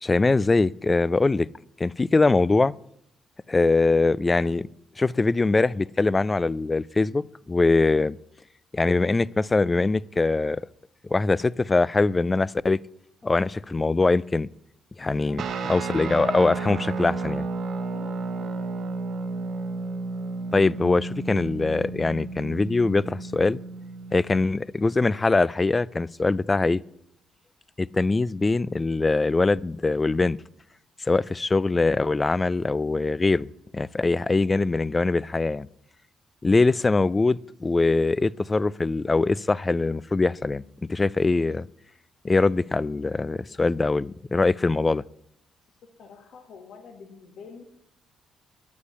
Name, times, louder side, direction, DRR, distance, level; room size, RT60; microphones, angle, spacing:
voice 1, 0.0-1.5 1.8-2.7 3.5-4.6 5.0-8.2 8.7-10.6 11.1-12.8 13.2-14.5 15.0-17.5 20.5-23.6 24.1-26.8 27.8-30.4 31.0-35.7 36.4-40.6 40.9-41.7 42.2-45.0, left 3 dB, 25° left, 0.4 m, -22 dB
Guitar, 15.4-24.5, right 3 dB, 65° right, 1.3 m, -32 dB
voice 2, 17.8-18.7 43.1-43.6 46.0-47.7, left 5 dB, 75° left, 1.9 m, -47 dB
9.8 x 8.5 x 9.6 m
cardioid pair, 90°, 0 cm